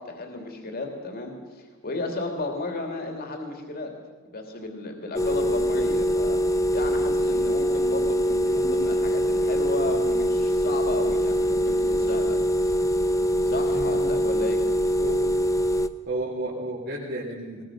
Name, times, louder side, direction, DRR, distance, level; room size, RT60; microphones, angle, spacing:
voice 1, 0.0-3.9 4.3-6.4 6.7-12.4 12.7-12.8 13.4-14.6, left 2 dB, 45° left, 3 dB, 2.9 m, -34 dB
sound 1, 5.2-15.9, equal, 15° left, 0.7 m, -23 dB
voice 2, 16.1-17.6, right 1 dB, 45° right, -5 dB, 3.6 m, -32 dB
21.5 x 20.5 x 6.5 m, 1.4 s
head